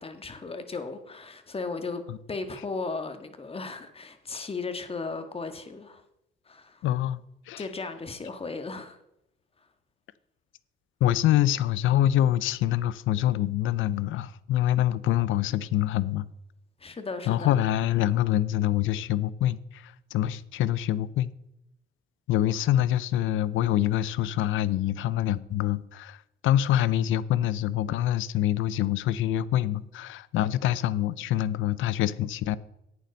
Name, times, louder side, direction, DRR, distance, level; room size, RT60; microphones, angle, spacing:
voice 1, 0.0-2.0 2.3-6.0 6.4-6.8 7.6-9.0 16.8-17.6, left 4 dB, 30° left, 1.6 m, -36 dB
voice 2, 6.8-7.2 7.5-7.6 11.0-16.3 17.3-21.3 22.3-32.6, left 12 dB, 85° left, 0.6 m, -25 dB
11.0 x 9.2 x 4.0 m
cardioid pair, 90°, 20 cm